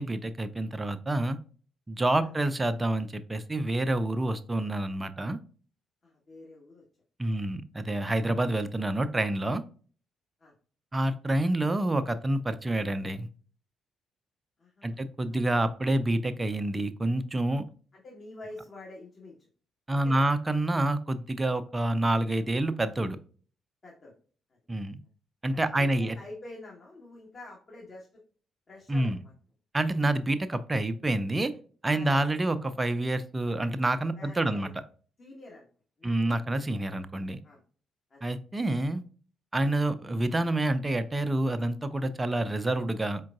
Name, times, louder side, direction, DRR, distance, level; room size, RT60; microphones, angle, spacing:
voice 1, 0.0-1.4 1.9-5.4 7.2-9.6 10.9-13.3 14.8-17.6 19.9-23.2 24.7-25.0 25.4-26.1 28.9-29.2 29.7-31.5 31.8-34.7 36.0-37.4 38.2-39.0 39.5-43.2, right 1 dB, 20° right, 12 dB, 0.5 m, -28 dB
voice 2, 6.0-6.8 7.3-7.4 10.4-10.5 14.6-15.4 17.9-19.5 19.9-20.3 23.8-24.1 25.5-28.1 28.7-29.3 31.9-32.2 34.2-34.7 35.2-35.7 36.0-36.7 37.4-37.6 38.1-38.3, left 2 dB, 40° left, -4 dB, 1.2 m, -47 dB
4.5 x 3.6 x 2.3 m, 0.41 s
figure-of-eight pair, 40°, 0 cm